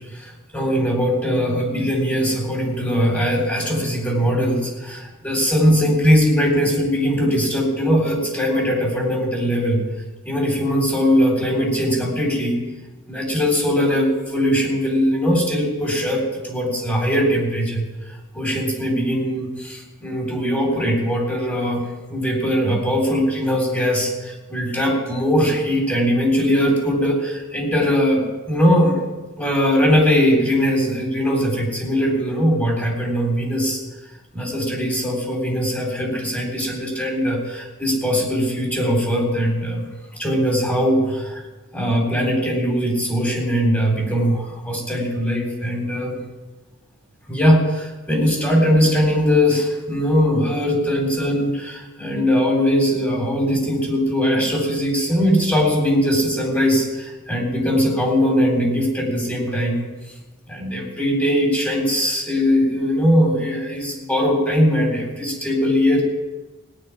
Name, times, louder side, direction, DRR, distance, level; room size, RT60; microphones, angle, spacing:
voice 1, 0.1-9.8 10.3-12.6 13.1-21.8 22.1-29.0 29.4-33.8 34.3-39.9 40.2-41.4 41.7-46.2 47.3-59.8 60.5-66.0, equal, 10° left, -1 dB, 3.7 m, -20 dB
17.5 x 6.2 x 9.8 m, 1.2 s
head